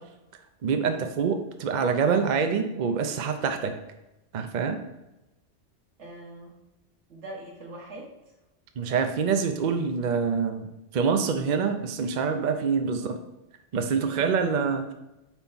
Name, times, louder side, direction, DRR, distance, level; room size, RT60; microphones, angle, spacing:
voice 1, 0.6-3.8 4.3-4.8 8.8-13.2 13.7-14.9, right 5 dB, 50° right, 6 dB, 0.6 m, -26 dB
voice 2, 6.0-6.5 7.1-8.1 13.0-13.2 13.9-14.7, right 1 dB, 75° right, -1 dB, 1.7 m, -43 dB
4.5 x 4.4 x 5.4 m, 0.94 s
omnidirectional pair, 1.2 m